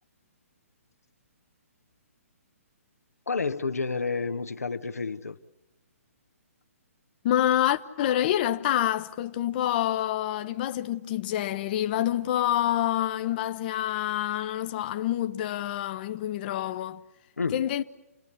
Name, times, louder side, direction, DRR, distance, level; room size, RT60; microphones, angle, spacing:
voice 1, 3.3-5.4 17.4-17.7, left 4 dB, 80° left, 1.0 m, -30 dB
voice 2, 7.2-17.0 17.5-17.8, left 12 dB, 40° left, 0.8 m, -27 dB
28.5 x 19.0 x 8.5 m
figure-of-eight pair, 135°, 8 cm